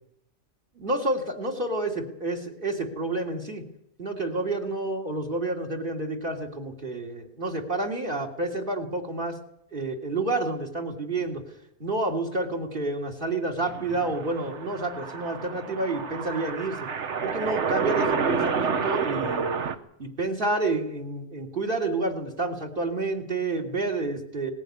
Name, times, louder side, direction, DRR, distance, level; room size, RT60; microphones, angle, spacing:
voice 1, 0.8-3.6 4.0-9.4 9.7-11.4 11.8-16.8 17.2-19.5 20.0-24.5, right 2 dB, 45° right, 5 dB, 3.1 m, -29 dB
sound 1, 13.7-19.7, right 6 dB, 70° right, 1.4 m, -29 dB
20.0 x 14.5 x 9.5 m, 0.79 s
omnidirectional pair, 1.3 m